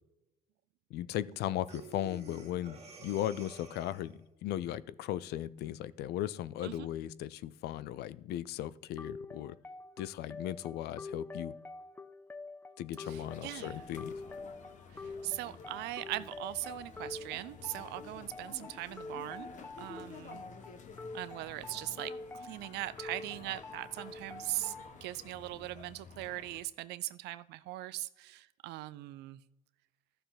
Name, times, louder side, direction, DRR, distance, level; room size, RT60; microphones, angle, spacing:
voice 1, 0.9-4.1 4.4-9.6 10.0-11.5 12.8-14.1, left 12 dB, 75° left, 18 dB, 0.5 m, -37 dB
Breathing, 1.7-4.2, right 3 dB, 40° right, 1.9 m, -51 dB
sound 1, 9.0-25.0, left 3 dB, 10° left, 0.3 m, -46 dB
voice 2, 13.0-13.8 14.9-20.4 21.1-24.8 25.0-29.4, right 16 dB, 85° right, 16 dB, 0.4 m, -40 dB
sound 2, 13.1-26.6, left 5 dB, 45° left, 1.1 m, -52 dB
12.5 x 6.6 x 3.9 m, 1.0 s
cardioid pair, 110°, 17 cm